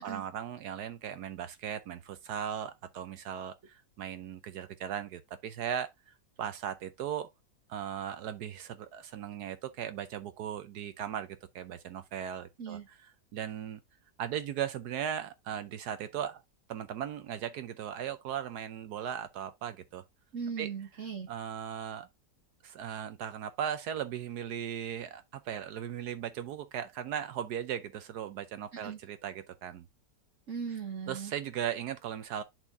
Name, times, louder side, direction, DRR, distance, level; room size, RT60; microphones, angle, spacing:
voice 1, 0.0-7.3 7.7-11.3 11.5-12.8 13.3-13.8 14.2-16.4 16.7-20.0 20.6-20.7 21.3-22.1 22.6-29.9 31.1-32.4, right 9 dB, 75° right, 1.2 m, -37 dB
voice 2, 20.3-21.3 28.7-29.0 30.5-31.3, right 6 dB, 50° right, 1.3 m, -38 dB
7.8 x 4.4 x 3.5 m
omnidirectional pair, 1.8 m